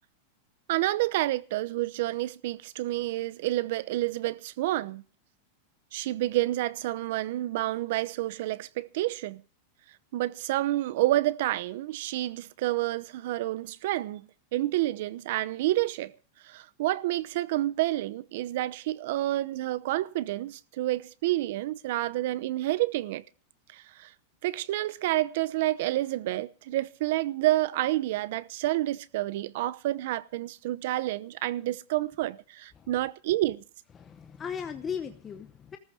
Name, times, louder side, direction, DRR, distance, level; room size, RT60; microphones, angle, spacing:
voice 1, 0.7-5.0 5.9-9.4 10.1-16.1 16.4-23.2 23.7-24.1 24.4-33.6, right 16 dB, 55° right, 0.8 m, -29 dB
voice 2, 34.0-35.8, left 7 dB, 15° left, 0.9 m, -37 dB
17.0 x 14.0 x 5.0 m
supercardioid pair, 165°, 0 cm